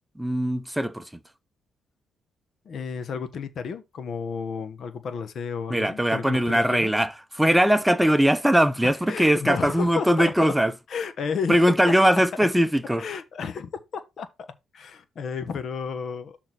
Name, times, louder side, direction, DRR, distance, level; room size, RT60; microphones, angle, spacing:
voice 1, 0.2-1.1 5.7-10.7 11.5-13.0, equal, 5° right, 0.8 m, -21 dB
voice 2, 2.6-6.9 8.8-10.5 10.9-11.6 11.9-12.0 13.0-14.5 14.7-16.4, left 6 dB, 55° left, 1.2 m, -32 dB
6.4 x 3.9 x 6.1 m
cardioid pair, 90°, 0 cm